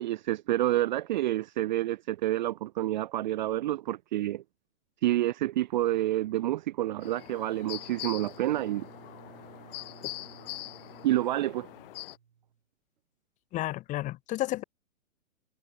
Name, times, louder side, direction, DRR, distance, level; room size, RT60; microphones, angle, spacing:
voice 1, 0.0-4.4 5.0-8.9 11.0-11.7, right 14 dB, 35° right, 0.7 m, -28 dB
sound 1, 7.0-12.2, left 17 dB, 40° left, 3.5 m, -43 dB
Bowed string instrument, 7.1-12.6, right 7 dB, 75° right, 5.3 m, -54 dB
voice 2, 13.5-14.6, left 16 dB, 20° left, 1.1 m, -32 dB
hypercardioid pair, 140°, 42 cm